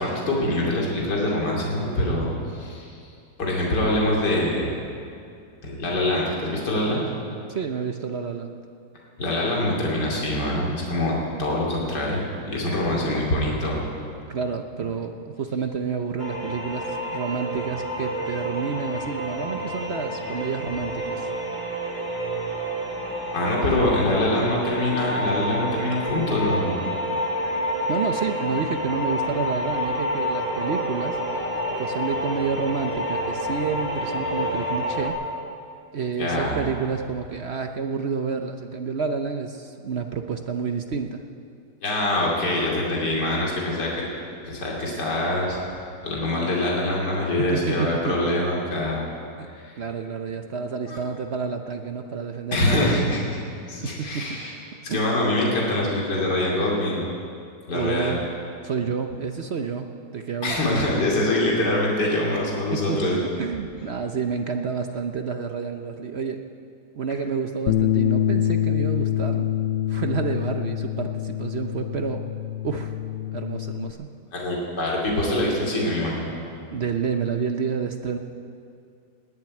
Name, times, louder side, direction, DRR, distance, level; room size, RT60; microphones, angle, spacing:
voice 1, 0.0-2.9 3.4-4.7 5.6-7.0 9.2-13.9 23.3-26.8 36.2-36.6 41.8-43.9 44.4-45.6 46.0-49.0 49.5-49.7 50.9-51.0 52.5-53.4 53.7-54.5 54.8-57.1 57.7-58.2 60.4-63.1 74.3-76.4, left 1 dB, 70° left, -3 dB, 3.3 m, -24 dB
voice 2, 7.5-8.5 12.8-13.2 14.3-21.3 27.9-31.2 31.8-35.2 35.9-41.2 47.4-48.3 49.4-49.5 49.8-53.0 53.8-54.4 54.9-55.1 57.7-58.2 58.6-59.9 60.1-60.8 62.7-66.4 66.9-69.5 69.9-72.2 72.6-73.0 73.3-74.1 76.7-78.2, right 6 dB, 55° right, 6 dB, 0.7 m, -29 dB
sound 1, 16.2-35.1, equal, 35° left, 2.6 m, -29 dB
Bass guitar, 67.7-73.9, left 11 dB, 90° left, 0.6 m, -25 dB
19.0 x 7.5 x 9.5 m, 2.5 s
omnidirectional pair, 1.9 m